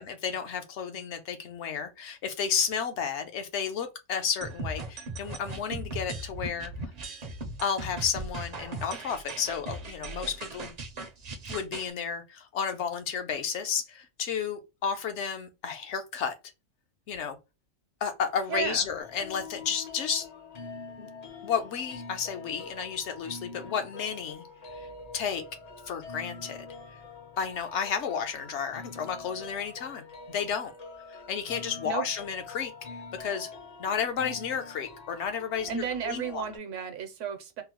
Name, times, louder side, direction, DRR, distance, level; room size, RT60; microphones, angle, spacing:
voice 1, 0.0-6.7 7.6-10.7 11.5-16.3 17.1-17.4 18.0-20.3 21.0-21.1 21.4-24.4 24.7-24.9 25.1-25.4 25.9-26.7 27.4-30.7 31.1-32.7 33.2-33.5 33.8-36.4, left 7 dB, 70° left, 0.9 m, -32 dB
sound 1, 4.4-11.9, right 2 dB, 50° right, 0.5 m, -38 dB
voice 2, 18.5-18.9 31.8-32.0 35.7-37.6, right 7 dB, 80° right, 1.0 m, -33 dB
sound 2, 19.0-36.6, left 4 dB, 45° left, 0.5 m, -45 dB
3.7 x 2.0 x 2.8 m
omnidirectional pair, 1.3 m